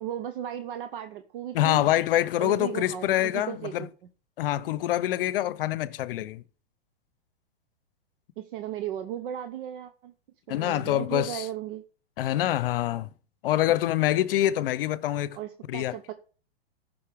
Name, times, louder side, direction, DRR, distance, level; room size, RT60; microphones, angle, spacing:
voice 1, 0.0-1.9 2.4-3.9 8.4-10.1 10.5-11.8 15.3-16.1, right 10 dB, 60° right, 0.9 m, -36 dB
voice 2, 1.5-3.8 4.4-6.4 10.5-11.5 12.2-13.1 13.4-15.4 15.7-15.9, left 13 dB, 60° left, 0.8 m, -25 dB
14.0 x 5.5 x 3.5 m
hypercardioid pair, 120°, 31 cm